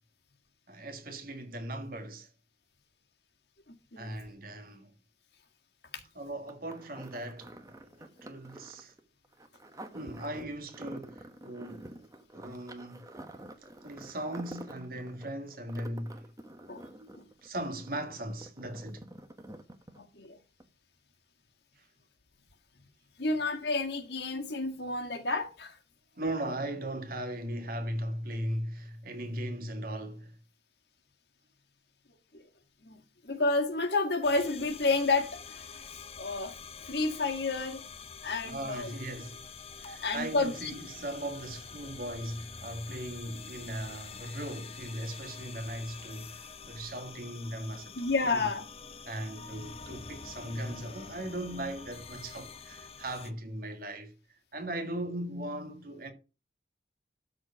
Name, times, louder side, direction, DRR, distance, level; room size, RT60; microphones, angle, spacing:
voice 1, 0.7-2.3 4.0-4.9 6.2-7.5 7.8-9.0 9.9-13.1 13.8-16.3 17.0-19.0 21.8-21.9 26.2-30.4 38.4-47.9 48.2-48.5 49.1-56.1, right 1 dB, 50° right, 1.9 m, -38 dB
voice 2, 3.7-4.1 5.9-6.0 16.7-16.8 17.1-17.2 20.0-20.4 23.2-25.8 32.3-32.5 32.8-33.0 33.2-36.5 36.8-37.8 38.2-38.9 40.0-40.7 47.9-48.7, left 3 dB, 65° left, 1.8 m, -30 dB
sound 1, 6.5-20.3 20.6-20.7, right 1 dB, 20° right, 1.1 m, -48 dB
sound 2, 34.2-53.3, left 5 dB, 35° left, 0.8 m, -47 dB
13.0 x 4.5 x 5.7 m
head